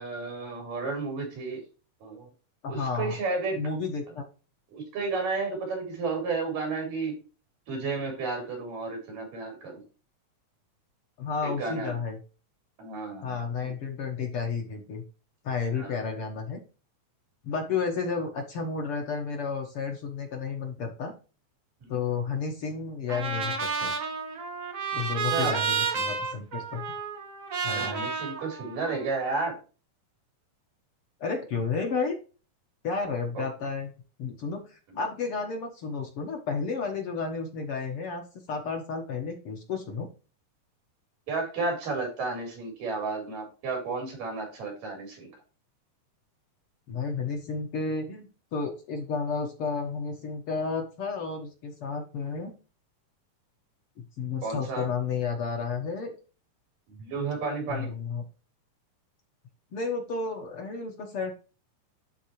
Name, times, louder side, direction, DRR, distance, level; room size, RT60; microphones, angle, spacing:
voice 1, 0.0-1.6 2.0-2.3 2.7-3.6 4.7-7.2 7.7-9.8 11.4-12.0 12.8-13.7 15.7-16.0 21.8-22.0 25.3-25.6 27.7-29.6 33.4-33.5 34.9-35.0 41.3-45.3 54.4-54.9 57.0-57.9, right 3 dB, 90° right, 1 dB, 5.5 m, -32 dB
voice 2, 2.6-3.2 3.6-4.2 11.2-12.2 13.2-15.0 15.4-16.6 17.4-21.1 21.9-24.0 24.9-27.0 27.6-28.1 31.2-32.2 32.8-33.9 34.2-38.2 38.5-40.1 46.9-52.5 54.2-56.1 57.7-58.2 59.7-61.3, left 5 dB, 55° left, 2 dB, 1.9 m, -32 dB
Trumpet, 23.1-29.3, right 5 dB, 60° right, 0.8 m, -31 dB
11.5 x 4.5 x 3.1 m, 0.34 s
omnidirectional pair, 3.7 m